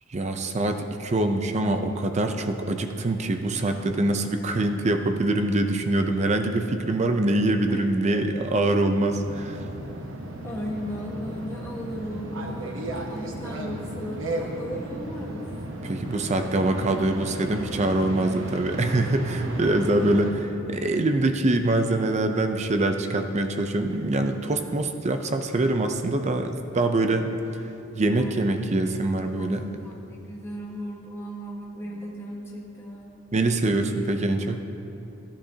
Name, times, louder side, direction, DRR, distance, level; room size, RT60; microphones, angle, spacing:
voice 1, 0.1-9.6 15.8-20.3 20.7-27.3 28.0-29.7 33.3-34.6, right 2 dB, 35° right, 6 dB, 0.5 m, -24 dB
voice 2, 7.7-8.8 10.4-15.5 19.7-20.4 28.2-28.9 29.4-33.3, equal, 15° left, -3 dB, 1.4 m, -37 dB
sound 1, 9.1-20.3, right 1 dB, 75° right, 1.0 m, -34 dB
14.0 x 10.5 x 2.8 m, 2.8 s
head